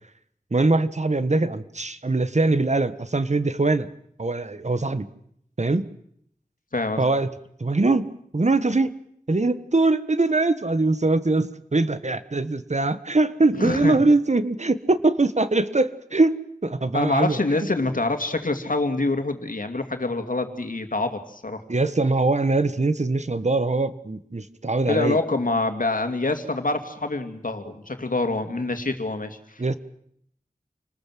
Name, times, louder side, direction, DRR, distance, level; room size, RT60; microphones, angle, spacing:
voice 1, 0.5-3.9 4.2-5.1 5.6-5.9 7.0-7.3 7.6-8.9 9.3-17.4 21.7-25.2 29.6-29.7, right 2 dB, 55° right, 13 dB, 1.5 m, -22 dB
voice 2, 6.7-7.0 13.5-13.9 16.9-21.6 24.9-29.8, left 2 dB, 70° left, 8 dB, 2.5 m, -26 dB
28.5 x 20.0 x 7.7 m, 0.70 s
wide cardioid pair, 50°, 14 cm